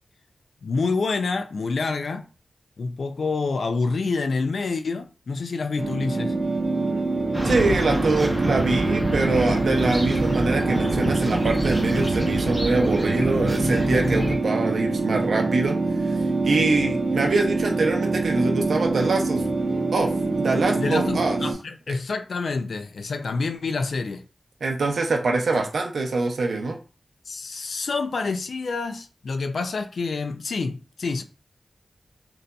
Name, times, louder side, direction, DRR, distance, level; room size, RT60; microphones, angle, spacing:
voice 1, 0.6-2.2 2.8-6.3 16.6-16.8 20.8-24.2 27.3-31.2, left 4 dB, 80° left, 0.3 m, -27 dB
sound 1, 5.8-21.5, right 3 dB, 35° right, 0.7 m, -25 dB
sound 2, 7.3-14.4, equal, 5° left, 0.7 m, -27 dB
voice 2, 7.5-15.8 16.0-16.2 16.4-19.4 19.9-21.4 24.6-26.8, right 3 dB, 85° right, 0.6 m, -24 dB
3.9 x 2.5 x 2.2 m
wide cardioid pair, 90°, 0 cm